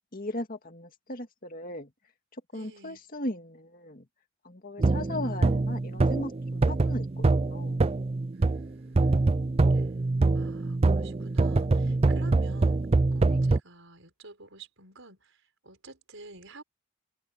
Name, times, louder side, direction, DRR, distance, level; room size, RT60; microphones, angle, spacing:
voice 1, 0.1-1.9 2.5-4.1 4.4-7.9 13.3-13.4, left 1 dB, 40° left, 2.1 m, -38 dB
voice 2, 2.5-3.0 8.3-9.4 9.7-9.9 10.3-12.8 13.1-16.6, right 2 dB, 60° right, 5.6 m, -50 dB
sound 1, 4.8-8.7 9.0-13.6, right 3 dB, 25° right, 0.4 m, -24 dB
head